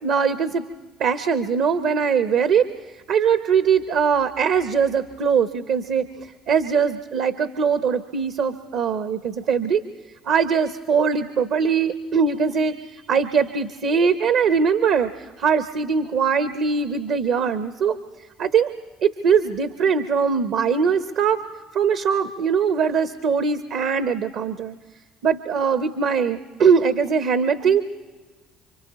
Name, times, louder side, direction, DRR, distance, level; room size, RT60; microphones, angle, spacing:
voice 1, 0.0-0.7 1.0-2.7 3.1-9.8 10.2-18.0 18.4-18.7 19.0-21.4 21.7-24.7 25.2-27.8, right 6 dB, 65° right, 11 dB, 0.8 m, -21 dB
29.0 x 25.0 x 4.2 m, 1.4 s
hypercardioid pair, 60°, 0 cm